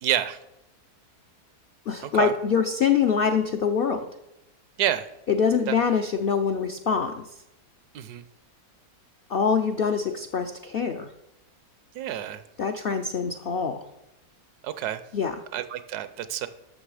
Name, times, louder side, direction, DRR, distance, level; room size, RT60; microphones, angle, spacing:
voice 1, 0.0-0.4 2.0-2.3 4.8-5.1 5.7-5.8 7.9-8.2 11.9-12.4 14.6-15.0 15.5-16.5, right 11 dB, 80° right, 13 dB, 1.2 m, -28 dB
voice 2, 1.9-4.1 5.3-7.3 9.3-11.1 12.6-13.9 15.1-15.4, left 6 dB, 70° left, 6 dB, 0.5 m, -24 dB
12.5 x 6.1 x 4.8 m, 0.88 s
omnidirectional pair, 1.7 m